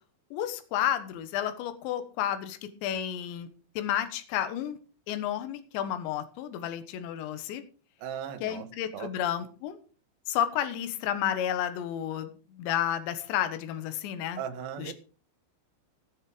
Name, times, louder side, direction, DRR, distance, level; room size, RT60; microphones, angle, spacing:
voice 1, 0.3-3.5 3.8-4.8 5.1-7.6 8.4-9.8 10.3-14.4 14.8-14.9, left 10 dB, 70° left, 10 dB, 3.4 m, -31 dB
voice 2, 8.0-8.7 8.9-9.1 14.4-14.9, right 8 dB, 65° right, 5 dB, 2.9 m, -37 dB
18.0 x 6.6 x 4.9 m, 0.37 s
omnidirectional pair, 5.6 m